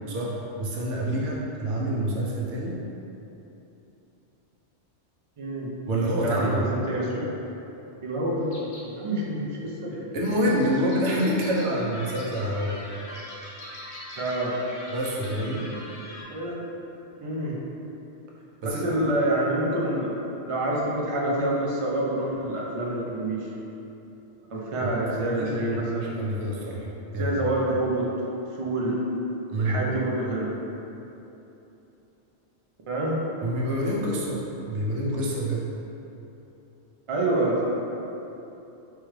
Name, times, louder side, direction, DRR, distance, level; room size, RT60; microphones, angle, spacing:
voice 1, 0.1-2.8 5.9-6.7 9.9-12.8 14.9-15.7 18.6-19.1 24.8-26.9 27.1-27.4 29.5-29.8 33.4-35.6, equal, 85° right, -4 dB, 1.0 m, -27 dB
voice 2, 5.4-5.7 6.2-7.2 8.0-10.1 14.2-14.6 16.3-16.6 17.2-17.6 18.6-20.1 20.4-23.5 24.5-26.5 27.1-28.1 28.5-29.0 29.6-30.5 32.9-33.2 37.1-37.7, right 1 dB, 45° right, -4 dB, 0.4 m, -27 dB
sound 1, 8.5-8.9 10.5-11.7 12.2-12.4 13.1-15.3 15.6-15.7, left 2 dB, 90° left, 1.0 m, -47 dB
sound 2, 11.8-16.2, equal, 55° left, 0.9 m, -42 dB
4.3 x 2.3 x 3.1 m, 3.0 s
omnidirectional pair, 1.2 m